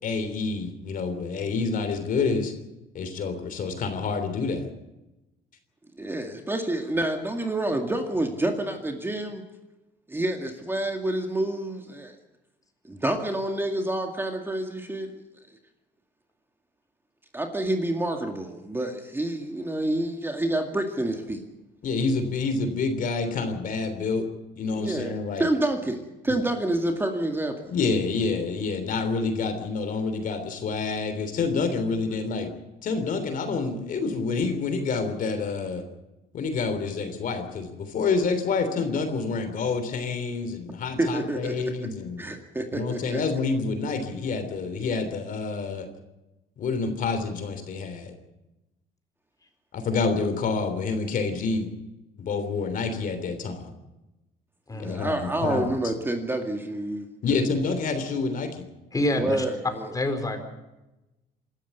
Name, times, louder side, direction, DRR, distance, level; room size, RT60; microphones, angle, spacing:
voice 1, 0.0-2.5 2.9-4.7 21.8-24.3 24.6-25.5 26.3-26.4 27.7-32.5 32.8-35.8 36.3-42.2 42.7-45.9 46.6-48.1 49.7-51.7 52.2-53.7 54.8-55.7 57.2-58.6, left 4 dB, 55° left, 8 dB, 3.3 m, -28 dB
voice 2, 6.0-9.4 10.1-12.1 12.8-15.1 17.3-21.4 24.8-27.7 41.0-41.5 42.2-43.2 54.7-57.1 59.1-59.9, right 1 dB, 15° right, 4 dB, 2.1 m, -28 dB
voice 3, 54.7-55.1 58.9-59.4 59.9-60.4, left 1 dB, 20° left, 6 dB, 4.4 m, -27 dB
26.0 x 13.5 x 8.3 m, 1.0 s
cardioid pair, 110°, 17 cm